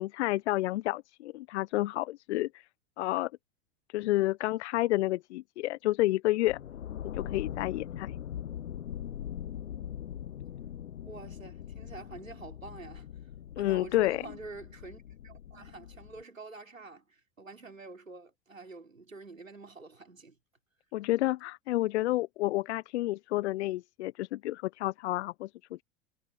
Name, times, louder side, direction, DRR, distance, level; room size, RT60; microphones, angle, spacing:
voice 1, 0.0-2.6 3.0-3.3 3.9-6.6 7.0-8.2 13.6-14.2 20.9-25.5, left 17 dB, 60° left, 1.2 m, -30 dB
sound 1, 6.5-16.2, left 10 dB, 75° left, 0.8 m, -41 dB
voice 2, 11.0-13.1 13.6-20.4, right 3 dB, 90° right, 3.9 m, -47 dB
figure-of-eight pair, 85°, 39 cm